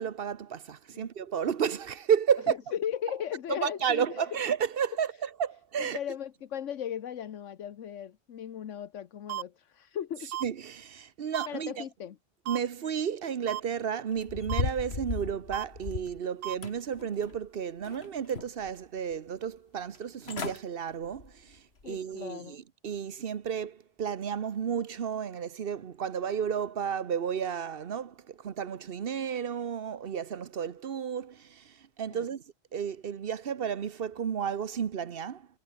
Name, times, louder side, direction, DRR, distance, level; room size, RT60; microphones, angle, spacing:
voice 1, 0.0-2.6 3.5-6.0 10.4-11.8 12.5-32.4 32.7-35.5, right 7 dB, 55° right, 1.0 m, -32 dB
voice 2, 2.5-4.3 5.8-10.3 11.5-12.2 21.8-22.6 32.1-32.3, left 9 dB, 85° left, 1.3 m, -37 dB
sound 1, 9.3-9.4 10.3-10.4 11.3-11.5 12.5-12.6 13.5-13.6 14.5-14.6 15.5-15.6 16.4-16.5, right 14 dB, 85° right, 0.9 m, -34 dB
sound 2, 14.2-16.2 16.6-17.5 17.8-18.7 19.1-19.2 19.9-20.0 20.2-20.6 21.1-21.3 21.8-21.9, left 4 dB, 60° left, 2.2 m, -36 dB
omnidirectional pair, 1.2 m